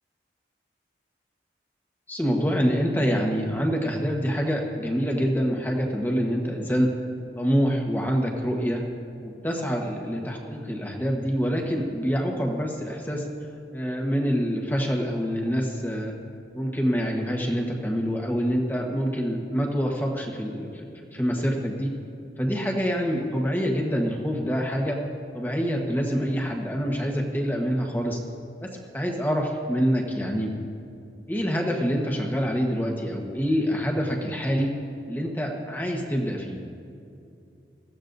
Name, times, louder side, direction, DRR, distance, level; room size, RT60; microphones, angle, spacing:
voice 1, 2.1-6.9 7.4-8.8 9.2-13.3 13.7-16.1 16.5-20.7 21.1-21.9 22.4-25.0 25.3-28.2 28.6-28.7 28.9-30.5 31.3-34.7 35.1-36.6, equal, 10° left, 0 dB, 1.2 m, -26 dB
21.0 x 15.0 x 2.7 m, 2.5 s
head